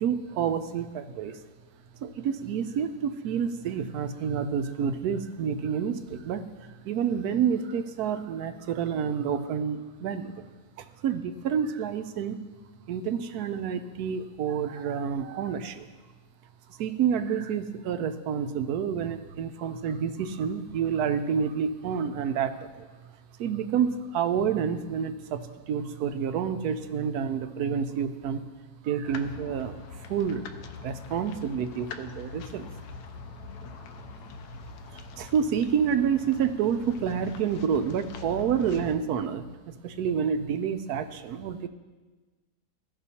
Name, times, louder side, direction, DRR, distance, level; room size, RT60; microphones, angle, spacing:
voice 1, 0.0-1.4 2.0-6.5 6.8-10.4 10.8-12.4 12.9-15.9 16.8-22.9 23.4-28.4 28.8-30.4 30.8-32.7 34.9-41.7, right 7 dB, 75° right, 10 dB, 1.1 m, -29 dB
sound 1, 29.0-39.0, left 4 dB, 80° left, 1.2 m, -43 dB
15.0 x 6.0 x 2.8 m, 1.3 s
omnidirectional pair, 1.7 m